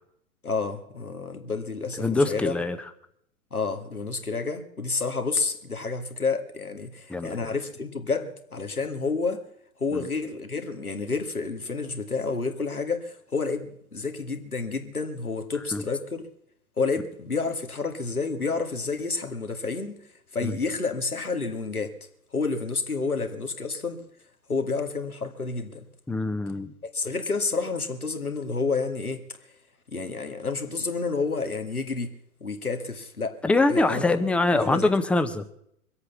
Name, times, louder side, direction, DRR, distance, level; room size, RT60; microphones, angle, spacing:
voice 1, 0.4-2.5 3.5-9.4 9.8-16.3 16.8-21.9 22.3-24.0 24.5-25.9 26.9-29.5 29.9-32.1 32.4-33.4 33.7-34.9, left 4 dB, 90° left, 2.2 m, -30 dB
voice 2, 2.0-2.8 7.1-7.4 9.9-10.0 15.7-15.8 20.4-20.5 26.1-26.7 33.4-35.4, left 2 dB, 5° left, 0.6 m, -24 dB
23.0 x 8.3 x 7.1 m
figure-of-eight pair, 115°, 42 cm